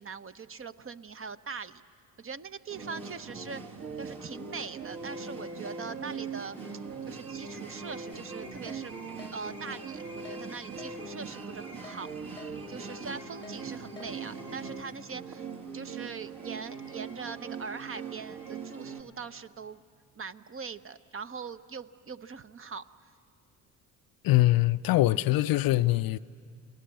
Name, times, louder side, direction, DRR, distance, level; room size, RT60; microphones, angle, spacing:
voice 1, 0.0-1.8 2.2-6.6 7.0-8.9 9.3-15.4 15.7-19.8 20.1-22.8, right 5 dB, 30° right, 0.8 m, -42 dB
sound 1, 2.7-19.0, right 4 dB, 55° right, 2.8 m, -41 dB
Keyboard (musical), 8.1-8.3 8.7-8.8 9.2-9.3 9.7-9.9 10.3-10.4 10.8-10.9 11.3-11.4 11.8-12.0 12.4-12.5 12.9-13.0 13.4-13.6 14.0-14.1, left 5 dB, 10° left, 1.0 m, -48 dB
voice 2, 24.2-26.2, left 17 dB, 55° left, 0.6 m, -23 dB
29.5 x 19.0 x 7.7 m
hypercardioid pair, 55°, 42 cm